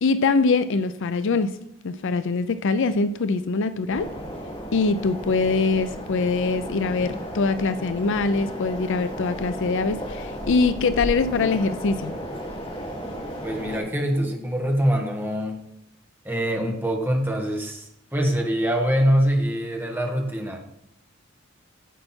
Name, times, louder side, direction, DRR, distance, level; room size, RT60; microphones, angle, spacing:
voice 1, 0.0-1.6 1.8-4.1 4.7-12.2, left 4 dB, 60° left, 12 dB, 0.5 m, -23 dB
sound 1, 3.9-13.8, equal, 30° left, 3.0 m, -34 dB
voice 2, 13.4-15.6 16.2-20.6, equal, 10° right, 1 dB, 1.6 m, -24 dB
10.0 x 7.8 x 4.4 m, 0.76 s
head